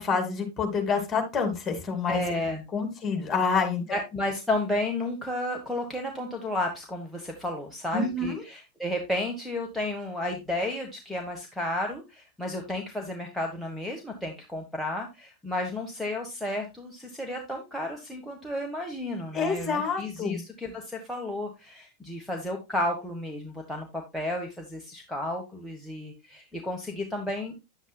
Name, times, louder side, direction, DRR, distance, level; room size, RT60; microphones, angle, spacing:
voice 1, 0.0-2.2 2.7-3.8 7.9-8.4 19.3-20.4, left 5 dB, 20° left, 5 dB, 2.5 m, -27 dB
voice 2, 2.1-2.6 3.9-27.5, left 1 dB, ahead, -1 dB, 1.4 m, -32 dB
9.5 x 8.0 x 2.3 m, 0.24 s
figure-of-eight pair, 90°, 0 cm